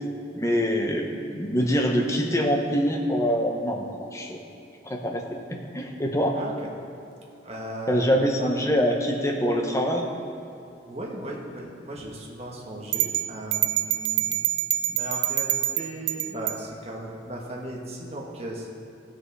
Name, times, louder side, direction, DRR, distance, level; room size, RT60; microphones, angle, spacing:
voice 1, 0.3-4.4 4.8-5.2 5.5-6.4 7.9-10.0, equal, 15° left, 1 dB, 0.9 m, -24 dB
voice 2, 6.3-6.7 7.4-8.1 8.3-8.5 10.8-14.4 14.9-18.7, right 1 dB, 35° right, -2 dB, 1.5 m, -36 dB
sound 1, 12.9-16.6, right 13 dB, 75° right, 0.3 m, -26 dB
15.5 x 6.5 x 4.7 m, 2.8 s
head